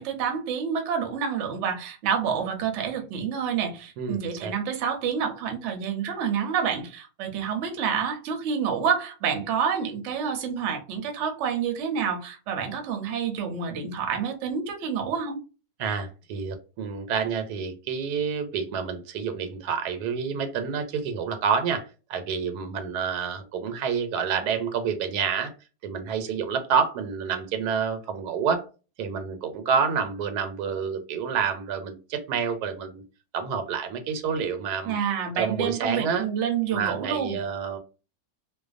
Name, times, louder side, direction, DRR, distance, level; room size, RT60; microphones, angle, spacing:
voice 1, 0.0-15.4 34.8-37.4, right 7 dB, 60° right, 0.8 m, -28 dB
voice 2, 4.0-4.5 15.8-25.5 25.8-28.6 29.0-33.0 33.3-34.9 35.4-36.3 36.7-37.8, right 6 dB, 90° right, 1.1 m, -28 dB
2.5 x 2.2 x 2.4 m
omnidirectional pair, 1.7 m